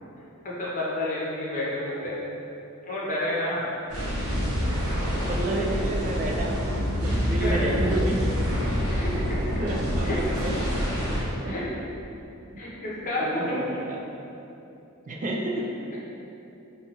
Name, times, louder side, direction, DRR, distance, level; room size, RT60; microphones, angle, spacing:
voice 1, 0.4-2.2 2.9-3.6 7.4-7.6 8.9-9.6 10.0-10.2 11.4-11.6 12.6-13.6, left 1 dB, 35° left, -6 dB, 0.7 m, -30 dB
sound 1, 3.9-11.2, equal, 85° right, 0.8 m, -27 dB
voice 2, 5.2-8.2 9.6-10.5 11.4-11.6 13.2-14.0 15.1-15.7, right 1 dB, 35° right, -1 dB, 0.3 m, -30 dB
4.0 x 2.3 x 2.9 m, 2.8 s
head